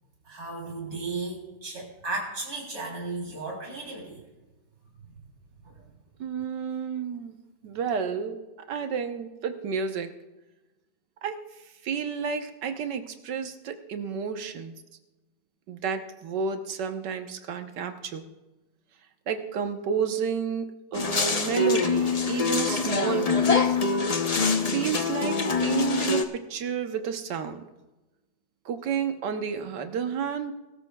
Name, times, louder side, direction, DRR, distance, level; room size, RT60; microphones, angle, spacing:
voice 1, 0.3-4.2 5.6-5.8, right 3 dB, 50° right, -1 dB, 4.0 m, -35 dB
voice 2, 6.2-7.4 7.6-8.4 8.7-10.1 11.2-11.4 11.8-14.7 15.7-18.2 19.3-23.8 24.7-27.6 28.6-30.5, right 6 dB, 70° right, 7 dB, 1.6 m, -31 dB
sound 1, 20.9-26.2, left 4 dB, 60° left, 0.4 m, -25 dB
22.5 x 13.0 x 2.3 m, 1.1 s
omnidirectional pair, 2.0 m